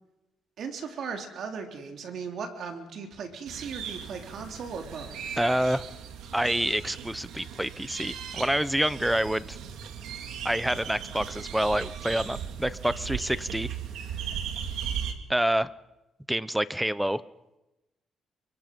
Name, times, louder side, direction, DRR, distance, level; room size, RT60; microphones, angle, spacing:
voice 1, 0.6-5.4, right 5 dB, 65° right, 4 dB, 3.3 m, -37 dB
sound 1, 3.5-15.1, right 8 dB, 85° right, 2.4 m, -37 dB
voice 2, 5.4-5.8 6.3-9.6 10.4-13.7 15.3-15.7 16.3-17.2, right 1 dB, 5° right, 16 dB, 0.9 m, -27 dB
29.5 x 24.0 x 5.4 m, 0.98 s
cardioid pair, 90°, 0 cm